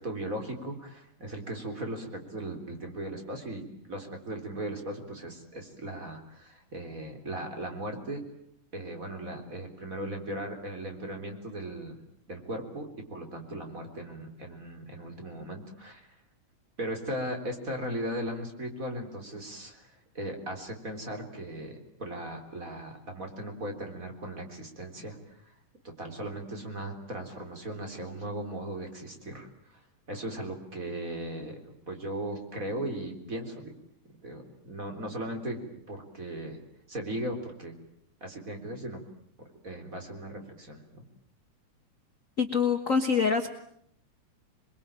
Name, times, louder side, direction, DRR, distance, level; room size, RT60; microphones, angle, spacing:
voice 1, 0.0-8.2 8.7-12.0 12.3-16.1 16.8-25.5 26.0-29.8 30.1-31.6 31.9-33.7 34.2-36.6 36.9-37.7 38.2-39.0 39.6-41.0, right 1 dB, 25° right, 4 dB, 4.0 m, -37 dB
voice 2, 42.4-43.5, left 5 dB, 40° left, 7 dB, 1.2 m, -25 dB
28.0 x 22.0 x 9.0 m, 0.69 s
omnidirectional pair, 3.3 m